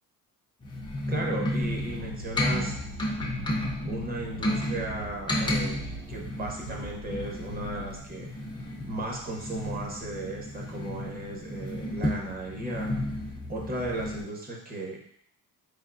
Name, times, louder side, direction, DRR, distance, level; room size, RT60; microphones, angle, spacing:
sound 1, 0.6-14.2, left 1 dB, 15° left, 0.5 m, -33 dB
voice 1, 1.1-2.7 3.9-8.3 8.9-13.0 13.5-15.0, right 1 dB, 25° right, -1 dB, 0.7 m, -35 dB
sound 2, 1.6-8.0, right 1 dB, 55° right, 1.1 m, -42 dB
3.9 x 3.5 x 2.5 m, 0.67 s
cardioid pair, 145°, 37 cm